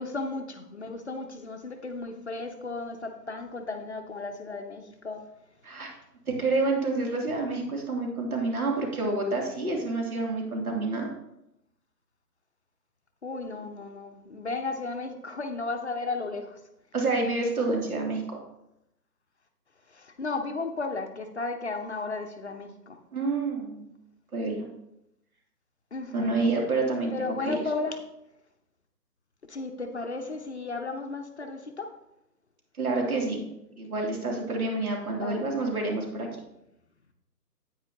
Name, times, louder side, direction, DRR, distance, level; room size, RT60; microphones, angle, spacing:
voice 1, 0.0-5.2 13.2-16.6 19.9-23.0 25.9-26.5 27.1-28.0 29.5-31.9 35.2-35.5, left 3 dB, 45° left, 5 dB, 0.8 m, -34 dB
voice 2, 5.6-5.9 6.3-11.1 16.9-18.4 23.1-23.9 24.3-24.7 26.1-27.5 32.8-33.5 33.8-36.3, right 3 dB, 60° right, 0 dB, 2.9 m, -28 dB
9.7 x 8.8 x 2.8 m, 0.84 s
hypercardioid pair, 170°, 48 cm